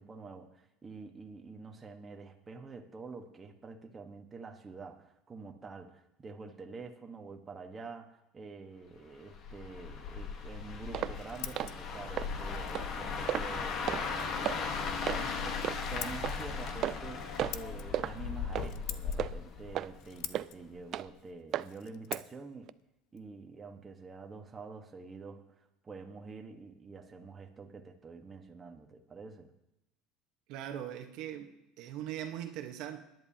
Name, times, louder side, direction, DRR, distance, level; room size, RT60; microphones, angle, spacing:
voice 1, 0.0-22.7 23.1-29.5, right 4 dB, 25° right, 1.3 m, -47 dB
sound 1, 9.3-20.4 20.8-21.0, left 5 dB, 50° left, 1.4 m, -37 dB
Scissors, 10.8-24.4, left 13 dB, 65° left, 0.7 m, -50 dB
sound 2, 10.9-11.2 11.6-11.7 12.2-12.3 12.7-12.9 13.3-13.5 13.9-14.0 14.4-14.6 15.1-15.2 15.6-15.8 16.2-16.4 16.8-17.1 17.4-17.6 17.9-18.1 18.5-18.7 19.2-19.3 19.7-19.9 20.3-20.5 20.9-21.1 21.5-21.7 22.1-22.3 22.7-22.8, right 12 dB, 50° right, 0.4 m, -33 dB
voice 2, 30.5-33.0, right 11 dB, 65° right, 1.2 m, -40 dB
20.0 x 11.0 x 2.9 m
supercardioid pair, 115°, 0 cm